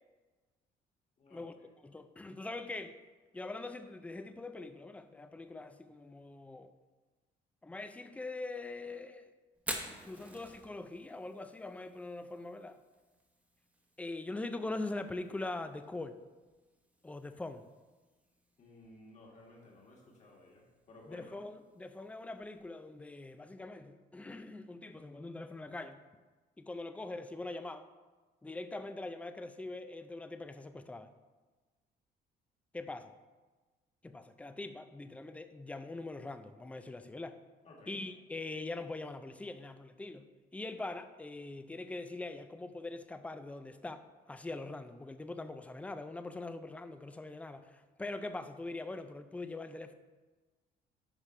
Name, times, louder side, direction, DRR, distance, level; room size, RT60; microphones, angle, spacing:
voice 1, 1.2-1.7 18.6-21.3 37.6-38.0, left 2 dB, 45° left, 1.9 m, -56 dB
voice 2, 1.8-3.0 3.3-6.7 7.6-9.3 10.0-12.8 14.0-16.2 17.0-17.6 21.1-26.0 26.6-27.9 28.4-31.1 32.7-33.1 34.0-37.4 37.9-49.9, left 2 dB, 10° left, 0.4 m, -42 dB
Fire, 9.5-23.4, right 1 dB, 10° right, 1.0 m, -51 dB
9.8 x 5.2 x 3.2 m
cardioid pair, 110°, 17 cm